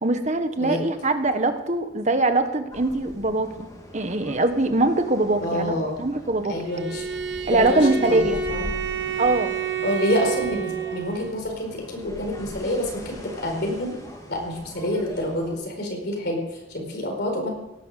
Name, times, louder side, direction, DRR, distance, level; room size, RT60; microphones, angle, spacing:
voice 1, 0.0-6.5 7.5-8.4 9.2-9.5, right 2 dB, 40° right, 8 dB, 1.5 m, -22 dB
sound 1, 2.7-15.5, equal, 20° left, 3.5 m, -41 dB
voice 2, 5.4-5.9 6.5-7.0 7.5-8.7 9.8-14.0 14.3-17.5, left 1 dB, 60° left, 2 dB, 4.5 m, -27 dB
Bowed string instrument, 6.6-11.4, right 6 dB, 65° right, 1.7 m, -29 dB
17.5 x 11.5 x 6.7 m, 0.99 s
head